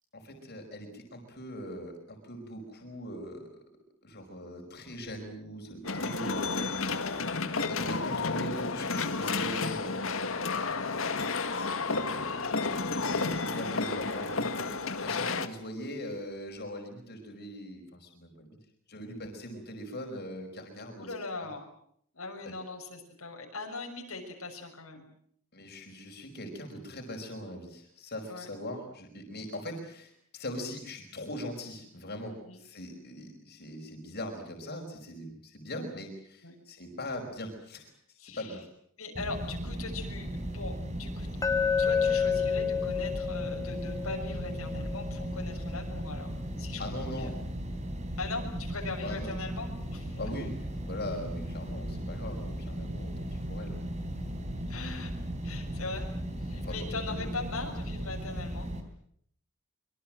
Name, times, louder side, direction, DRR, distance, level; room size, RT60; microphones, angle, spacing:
voice 1, 0.1-3.6 4.0-7.1 7.6-10.4 11.5-14.7 15.0-18.5 18.9-21.1 25.5-38.7 46.8-47.4 49.0-49.4 50.2-53.8 56.6-56.8 57.1-57.3, equal, 50° left, 2 dB, 5.3 m, -41 dB
sound 1, 5.8-15.5, left 4 dB, 70° left, 1.9 m, -31 dB
voice 2, 6.8-7.7 10.6-12.9 13.2-13.4 14.2-14.4 15.4-15.5 21.0-21.7 22.1-25.0 28.3-28.5 32.4-32.6 36.4-36.5 38.2-38.6 39.0-41.3 41.8-46.3 46.6-46.8 47.1-47.3 48.2-50.2 54.7-55.1 55.4-56.1 56.4-58.7, left 3 dB, 90° left, 2 dB, 6.3 m, -41 dB
sound 2, 39.1-58.8, right 1 dB, 35° right, 3.9 m, -37 dB
Glass, 41.4-45.5, left 6 dB, 15° left, 1.6 m, -30 dB
25.0 x 24.0 x 7.7 m, 0.68 s
head